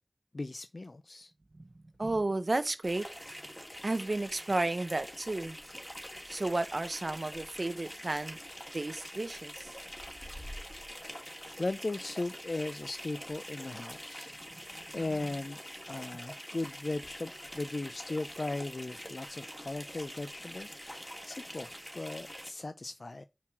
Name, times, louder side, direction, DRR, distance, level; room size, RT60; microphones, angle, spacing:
voice 1, 0.3-1.3 11.1-14.3 14.6-15.6 15.9-23.3, left 2 dB, 85° left, 0.4 m, -38 dB
voice 2, 2.0-3.1 3.8-5.6 6.3-8.4 8.7-9.7 14.5-14.6, right 2 dB, 70° right, 0.8 m, -32 dB
sound 1, 2.8-22.5, equal, 10° left, 2.6 m, -45 dB
7.1 x 4.7 x 5.8 m
wide cardioid pair, 50°, 0 cm